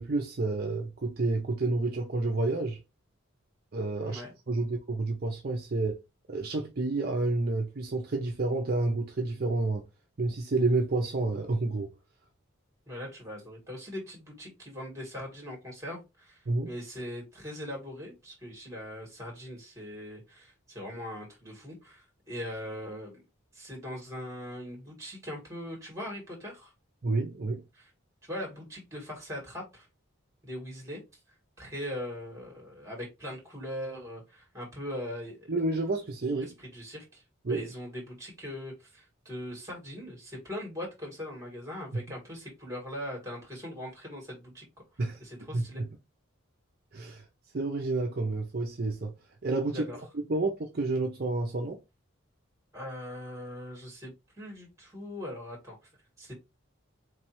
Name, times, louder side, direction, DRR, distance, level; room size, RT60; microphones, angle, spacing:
voice 1, 0.0-2.8 3.7-4.2 4.5-6.0 6.3-9.8 10.2-11.9 16.5-16.7 27.0-27.6 35.5-36.6 37.4-37.6 41.9-42.0 45.0-45.2 45.5-45.9 46.9-47.2 47.5-49.1 49.4-49.8 50.3-51.8, right 2 dB, 45° right, 0.6 m, -29 dB
voice 2, 12.9-23.2 23.5-26.7 27.7-27.9 28.3-29.9 30.4-31.0 31.6-35.5 36.4-37.2 37.5-44.7 44.9-45.8 49.7-50.0 52.7-55.8 56.2-56.3, left 1 dB, 15° right, 1.9 m, -40 dB
4.0 x 3.2 x 3.0 m
head